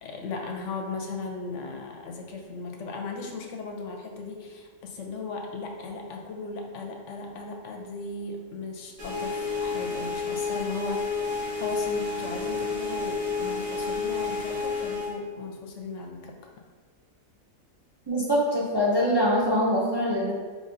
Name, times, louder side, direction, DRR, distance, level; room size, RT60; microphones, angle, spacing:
voice 1, 0.0-11.1 11.3-16.4, left 3 dB, 65° left, 2 dB, 0.9 m, -37 dB
sound 1, 9.0-15.1, left 4 dB, 65° right, 1.4 m, -30 dB
voice 2, 18.1-20.3, equal, 40° right, -6 dB, 0.3 m, -23 dB
5.2 x 3.3 x 2.6 m, 1.5 s
omnidirectional pair, 1.5 m